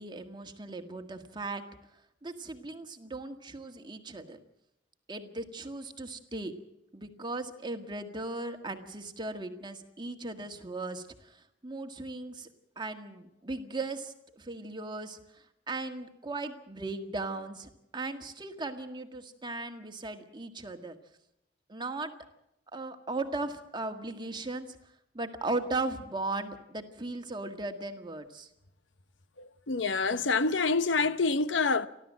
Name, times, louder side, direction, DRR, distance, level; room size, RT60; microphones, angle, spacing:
voice 1, 0.0-1.6 2.2-4.4 5.1-6.5 6.9-12.5 12.8-21.0 21.7-22.1 22.7-24.8 25.1-28.5, right 2 dB, 25° right, 1.7 m, -37 dB
voice 2, 29.7-31.9, left 4 dB, 75° left, 0.9 m, -26 dB
29.5 x 12.5 x 7.5 m
head